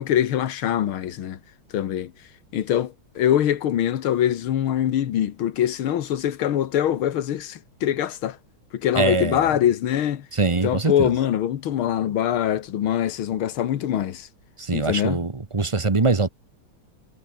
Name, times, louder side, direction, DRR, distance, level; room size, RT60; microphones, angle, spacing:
voice 1, 0.0-1.4 1.7-2.1 2.5-8.4 8.7-10.3 10.6-14.3 14.7-15.3, left 10 dB, 90° left, 2.1 m, -23 dB
voice 2, 9.0-9.4 10.3-11.1 14.7-16.3, right 3 dB, 20° right, 0.8 m, -22 dB
omnidirectional pair, 2.2 m